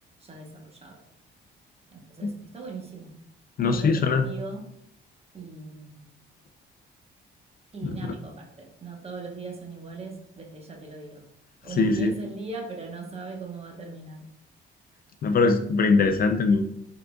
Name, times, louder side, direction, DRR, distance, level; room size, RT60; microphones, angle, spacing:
voice 1, 0.2-1.0 1.9-3.2 3.7-4.6 5.3-6.2 7.7-11.2 11.6-14.3, right 4 dB, 30° right, 1 dB, 1.0 m, -39 dB
voice 2, 3.6-4.2 7.8-8.0 11.8-12.1 15.2-16.7, left 4 dB, 50° left, 6 dB, 0.4 m, -21 dB
3.8 x 3.6 x 2.3 m, 0.71 s
cardioid pair, 90°, 20 cm